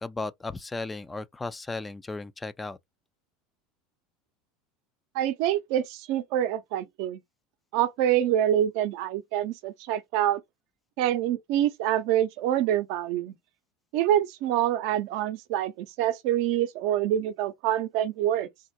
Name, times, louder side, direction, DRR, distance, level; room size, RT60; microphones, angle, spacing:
voice 1, 0.0-2.8, left 3 dB, 15° left, 0.3 m, -35 dB
voice 2, 5.1-7.2 7.7-10.4 11.0-13.3 13.9-18.5, right 11 dB, 65° right, 0.6 m, -26 dB
3.6 x 2.0 x 2.9 m
hypercardioid pair, 90°, 0 cm